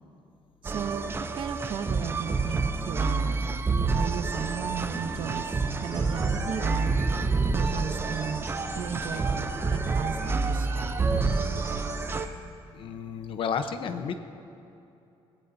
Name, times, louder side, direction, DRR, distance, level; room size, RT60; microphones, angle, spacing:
voice 1, 0.6-3.5 4.0-5.5 5.8-7.0 7.5-8.5 8.7-11.0, right 7 dB, 55° right, 8 dB, 0.8 m, -35 dB
sound 1, 0.7-12.3, right 4 dB, 25° right, 0.6 m, -28 dB
sound 2, 4.3-12.3, right 1 dB, 5° right, 3.8 m, -41 dB
voice 2, 12.7-14.2, left 6 dB, 60° left, 9 dB, 0.9 m, -31 dB
21.0 x 16.5 x 2.7 m, 2.7 s
cardioid pair, 125°, 10 cm